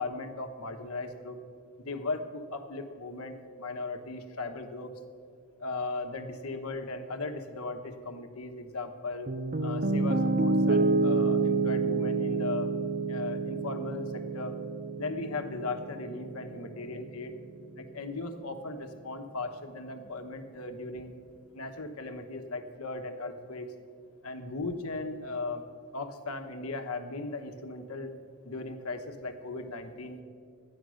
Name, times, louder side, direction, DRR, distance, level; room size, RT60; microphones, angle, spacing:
voice 1, 0.0-1.4 1.8-4.9 5.6-9.3 9.6-12.7 13.1-14.5 15.0-17.4 17.8-21.1 21.5-23.7 24.2-25.6 25.9-28.1 28.4-30.2, left 3 dB, 80° left, 6 dB, 1.1 m, -37 dB
Piano, 9.3-17.4, right 3 dB, 35° right, 0.5 m, -29 dB
13.0 x 9.8 x 6.3 m, 2.2 s
head